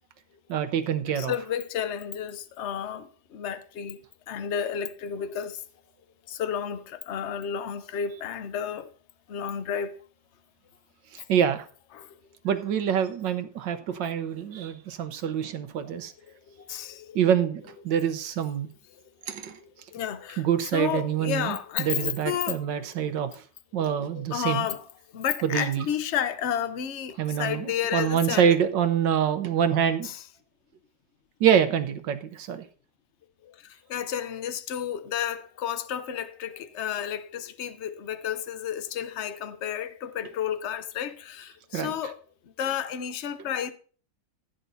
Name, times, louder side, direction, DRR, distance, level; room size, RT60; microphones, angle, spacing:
voice 1, 0.5-1.3 11.1-11.7 12.4-16.1 17.1-18.7 19.3-19.6 20.4-23.4 23.7-24.7 25.4-25.9 27.2-30.1 31.4-32.6 41.7-41.9, right 8 dB, 75° right, 1.6 m, -26 dB
voice 2, 1.1-4.0 4.3-5.6 6.3-8.9 9.3-10.0 11.9-12.2 16.5-17.2 18.9-19.0 19.6-20.4 20.7-22.6 24.1-24.8 25.1-28.6 30.0-30.2 33.4-42.2 42.6-43.7, left 9 dB, 55° left, 0.8 m, -32 dB
15.0 x 9.3 x 2.7 m
omnidirectional pair, 2.0 m